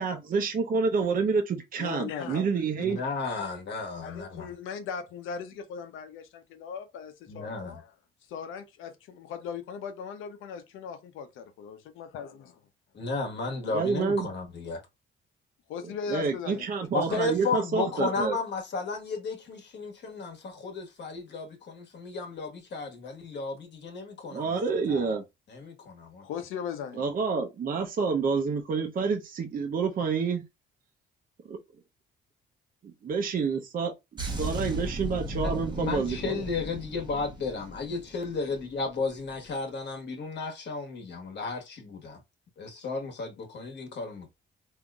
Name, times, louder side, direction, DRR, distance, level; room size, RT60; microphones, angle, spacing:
voice 1, 0.0-3.0 13.7-14.3 15.8-18.4 24.3-25.2 26.9-30.4 31.4-31.6 32.8-36.3, right 5 dB, 45° right, 0.7 m, -28 dB
voice 2, 1.8-2.5 2.8-2.9 3.4-3.5 4.0-7.8 8.3-12.6 15.7-16.7 26.2-27.0, left 7 dB, 90° left, 0.8 m, -38 dB
voice 3, 2.8-4.5 7.3-7.8 12.9-14.8 16.9-24.6 24.9-25.2 25.5-26.3 35.4-42.2 42.6-44.3, left 4 dB, 60° left, 1.3 m, -34 dB
sound 1, 34.2-38.7 39.0-39.3, right 1 dB, 20° right, 1.0 m, -36 dB
3.7 x 2.8 x 2.3 m
cardioid pair, 90°, 20 cm